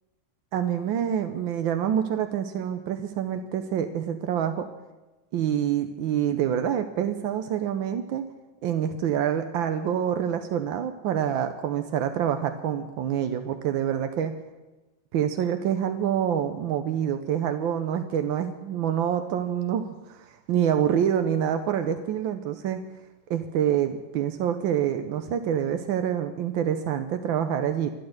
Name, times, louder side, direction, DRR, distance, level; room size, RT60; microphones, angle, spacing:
voice 1, 0.5-4.7 5.3-8.3 8.6-14.3 15.1-22.8 23.3-27.9, right 9 dB, 90° right, 8 dB, 1.6 m, -26 dB
13.0 x 11.0 x 8.0 m, 1.1 s
omnidirectional pair, 2.1 m